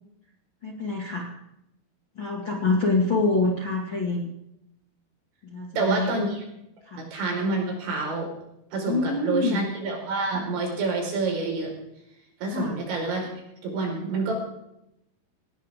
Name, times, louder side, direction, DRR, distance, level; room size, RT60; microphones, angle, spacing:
voice 1, 0.6-1.3 2.2-4.3 5.4-6.2 6.8-7.1 8.9-9.6 12.5-12.8, left 3 dB, 40° left, -2 dB, 1.8 m, -26 dB
voice 2, 5.8-6.4 7.0-8.3 8.7-11.7 12.4-13.3 13.6-14.3, right 3 dB, 80° right, 0 dB, 7.2 m, -27 dB
19.5 x 18.5 x 3.7 m, 0.82 s
omnidirectional pair, 5.2 m